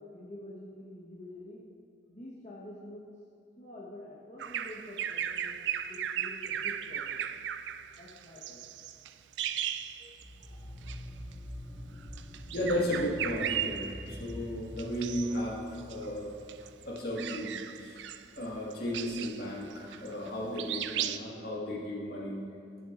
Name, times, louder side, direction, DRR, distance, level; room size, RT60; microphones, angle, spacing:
voice 1, 0.0-1.6 2.1-3.0 3.6-5.6 5.9-7.2 8.0-8.7, left 1 dB, 40° left, -7 dB, 1.3 m, -47 dB
Bird vocalization bird call bird song, 4.4-10.5 10.8-11.0 12.0-14.3 14.8-15.4 15.8-20.3 20.6-21.2, right 10 dB, 75° right, 0.4 m, -36 dB
sound 1, 10.1-17.4, equal, ahead, 1.1 m, -46 dB
voice 2, 12.5-16.4 16.8-17.5 17.8-18.0 18.4-22.4, equal, 60° left, -4 dB, 1.9 m, -34 dB
17.0 x 7.3 x 2.6 m, 2.3 s
head